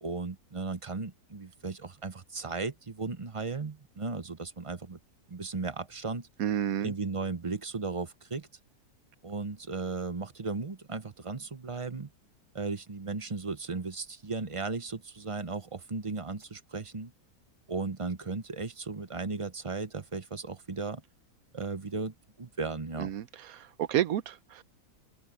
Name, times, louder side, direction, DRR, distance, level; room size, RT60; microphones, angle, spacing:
voice 1, 0.0-5.0 5.3-6.3 6.8-8.5 9.2-12.1 12.5-17.1 17.7-21.0 21.5-23.1, right 3 dB, 25° right, 0.8 m, -36 dB
voice 2, 6.4-6.9 23.0-23.2 23.5-24.6, right 11 dB, 70° right, 1.2 m, -30 dB
open air
omnidirectional pair, 1.6 m